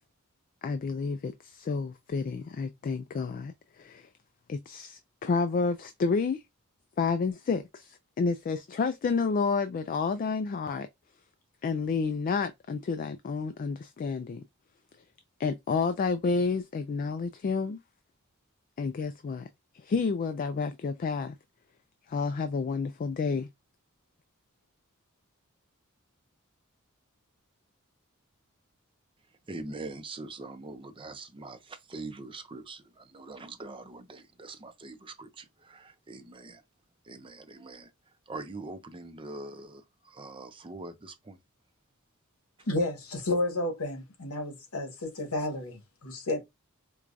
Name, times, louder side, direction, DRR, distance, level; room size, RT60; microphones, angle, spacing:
voice 1, 0.6-4.1 4.5-6.4 7.0-10.9 11.6-14.4 15.4-17.8 18.8-19.5 19.7-21.4 22.1-23.5, left 4 dB, 40° left, 0.3 m, -30 dB
voice 2, 29.3-36.6 37.0-41.4, right 2 dB, 25° right, 0.5 m, -43 dB
voice 3, 42.6-46.4, left 2 dB, 90° left, 1.2 m, -31 dB
4.6 x 2.2 x 2.5 m
head